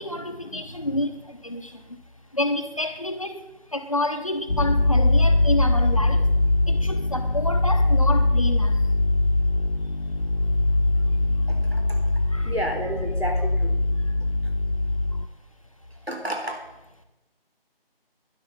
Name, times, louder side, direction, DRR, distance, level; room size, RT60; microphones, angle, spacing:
voice 1, 0.0-2.0 2.3-6.3 6.7-8.9 10.9-11.6 12.2-12.5 14.0-14.2 15.2-15.3, left 1 dB, 35° left, 6 dB, 1.0 m, -30 dB
sound 1, 4.5-15.3, left 2 dB, 75° left, 1.2 m, -22 dB
voice 2, 11.5-12.0 12.4-13.8 16.1-16.6, equal, 90° right, 3 dB, 3.8 m, -31 dB
12.0 x 11.0 x 5.7 m, 0.95 s
figure-of-eight pair, 165°, 30 cm